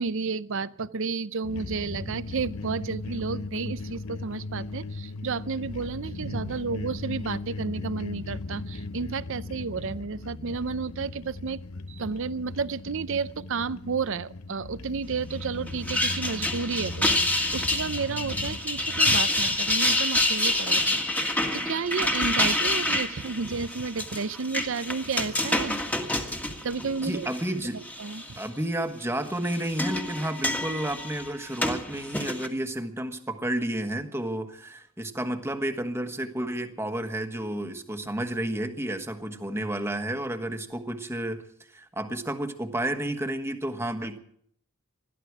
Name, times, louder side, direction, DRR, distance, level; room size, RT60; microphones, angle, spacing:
voice 1, 0.0-11.6 11.9-25.8 26.5-27.3 28.0-28.4, right 4 dB, 60° right, 16 dB, 0.6 m, -32 dB
sound 1, 1.4-18.6, left 3 dB, 90° left, 0.9 m, -38 dB
sound 2, 15.7-27.4 27.9-28.4 29.3-32.5, left 1 dB, 5° left, 1.7 m, -27 dB
voice 2, 27.0-27.8 28.4-41.4 41.7-44.2, right 1 dB, 10° right, 6 dB, 1.4 m, -31 dB
21.0 x 14.0 x 4.8 m, 0.64 s
head